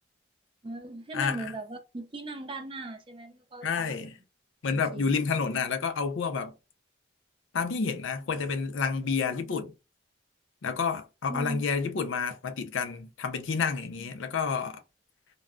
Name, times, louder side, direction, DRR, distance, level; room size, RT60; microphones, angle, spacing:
voice 1, 0.6-4.0 4.9-5.1 11.3-11.6, right 2 dB, 25° right, 0.5 m, -39 dB
voice 2, 1.1-1.5 3.6-4.1 4.6-6.5 7.5-9.7 10.6-14.8, left 5 dB, 85° left, 0.5 m, -29 dB
2.2 x 2.0 x 3.6 m
head